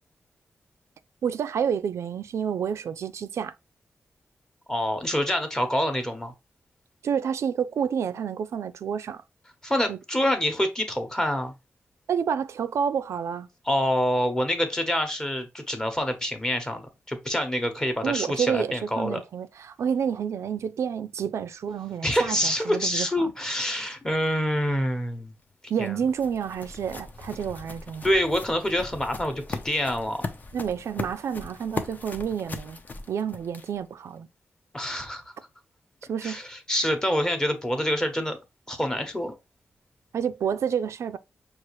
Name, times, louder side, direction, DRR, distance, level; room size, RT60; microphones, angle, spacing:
voice 1, 1.2-3.5 7.0-9.2 9.9-10.0 12.1-13.5 18.0-23.3 25.7-28.1 30.5-32.8 33.1-34.3 36.1-36.4 40.1-41.2, right 7 dB, 80° right, 0.3 m, -29 dB
voice 2, 4.7-6.3 9.6-11.5 13.7-19.2 22.0-25.3 25.8-26.0 28.0-30.2 34.7-35.2 36.2-38.4 38.7-39.3, equal, 15° left, 0.9 m, -26 dB
sound 1, 25.4-33.9, left 3 dB, 40° left, 0.6 m, -39 dB
6.1 x 2.4 x 3.0 m
wide cardioid pair, 135°, 5 cm